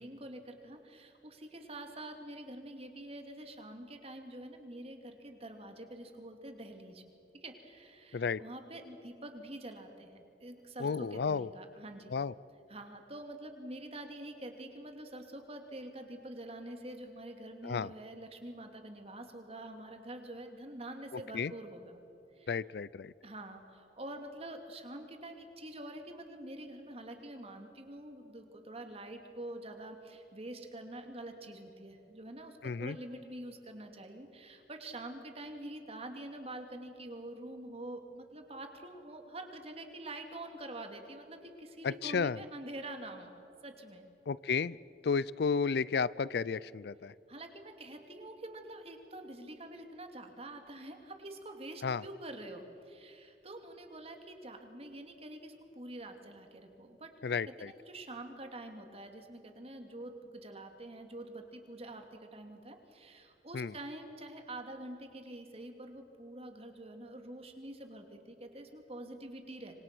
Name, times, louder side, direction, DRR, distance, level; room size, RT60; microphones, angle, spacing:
voice 1, 0.0-7.0 7.3-12.1 12.7-22.0 22.3-22.5 23.2-43.3 43.6-44.1 47.3-57.1 57.4-69.8, right 1 dB, 35° right, 5 dB, 2.6 m, -46 dB
voice 2, 8.1-8.4 10.8-11.5 12.1-12.3 17.6-17.9 21.3-21.5 22.5-23.1 32.6-33.0 41.8-42.4 44.3-44.8 45.0-47.1 51.8-52.0 57.2-57.7 63.5-63.7, left 5 dB, 65° left, 20 dB, 0.4 m, -32 dB
27.0 x 25.0 x 6.2 m, 2.8 s
head